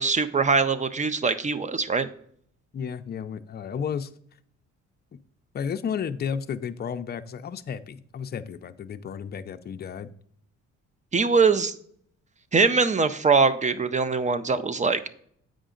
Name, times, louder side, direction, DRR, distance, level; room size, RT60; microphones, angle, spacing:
voice 1, 0.0-2.1 11.1-11.7 12.5-15.1, right 4 dB, 25° right, 0.5 m, -22 dB
voice 2, 2.7-4.1 5.5-10.1, left 7 dB, 35° left, 0.4 m, -32 dB
7.9 x 5.0 x 3.8 m
cardioid pair, 90°, 30 cm